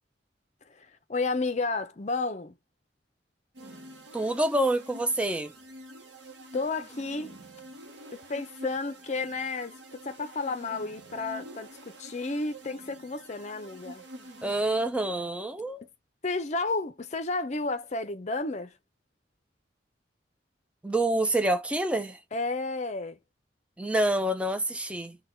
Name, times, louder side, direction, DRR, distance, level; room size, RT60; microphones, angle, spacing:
voice 1, 0.7-2.5 6.5-7.4 8.1-14.0 16.2-18.8 22.3-23.2, left 3 dB, 40° left, 0.6 m, -32 dB
sound 1, 3.5-15.3, right 1 dB, 85° right, 0.9 m, -47 dB
voice 2, 4.1-5.5 14.4-15.8 20.8-22.2 23.8-25.2, right 1 dB, 5° right, 0.4 m, -27 dB
3.9 x 2.2 x 4.3 m
head